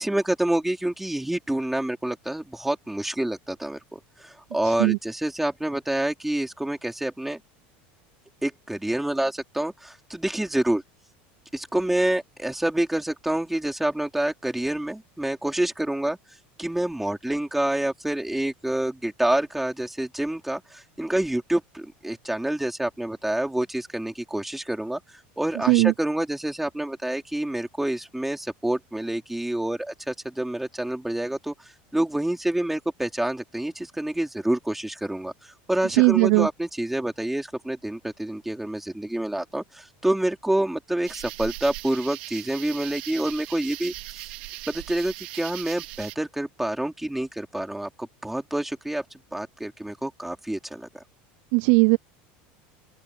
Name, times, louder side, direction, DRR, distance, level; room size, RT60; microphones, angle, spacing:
voice 1, 0.0-7.4 8.4-10.8 11.5-16.2 16.6-31.5 31.9-44.3 44.7-49.0 49.3-50.9, right 1 dB, 5° right, 3.8 m, -27 dB
voice 2, 4.6-5.0 25.7-25.9 35.9-36.5 51.5-52.0, right 29 dB, 65° right, 0.4 m, -18 dB
sound 1, 41.0-46.1, right 20 dB, 80° right, 2.5 m, -39 dB
open air
supercardioid pair, 135°, 5 cm